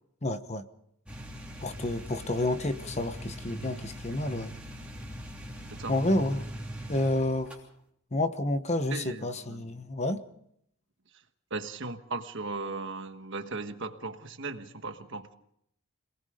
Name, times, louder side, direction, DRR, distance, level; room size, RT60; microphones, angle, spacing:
voice 1, 0.2-0.7 1.6-4.5 5.9-6.4 6.9-7.5 8.1-10.2, left 1 dB, 30° left, 11 dB, 1.0 m, -29 dB
sound 1, 1.1-7.6, equal, 5° right, 3.1 m, -41 dB
voice 2, 8.9-9.7 11.5-15.3, right 3 dB, 60° right, 8 dB, 1.4 m, -37 dB
26.5 x 19.5 x 5.0 m, 0.72 s
head